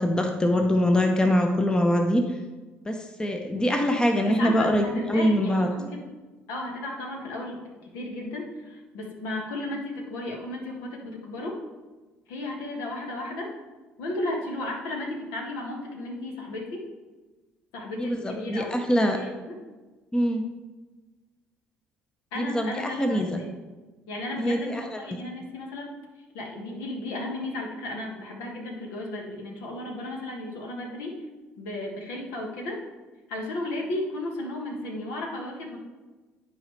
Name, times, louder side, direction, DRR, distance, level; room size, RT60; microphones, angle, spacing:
voice 1, 0.0-2.2 2.9-5.7 18.0-19.2 20.1-20.4 22.4-23.4 24.4-25.0, equal, 15° left, 4 dB, 0.9 m, -23 dB
voice 2, 4.2-6.1 6.5-11.6 12.3-13.5 14.0-16.8 17.7-19.6 22.3-23.5 24.1-25.9 26.3-31.2 31.6-32.8 33.3-35.8, left 1 dB, 65° left, 0 dB, 1.5 m, -34 dB
11.0 x 4.9 x 3.3 m, 1.2 s
figure-of-eight pair, 50°, 6 cm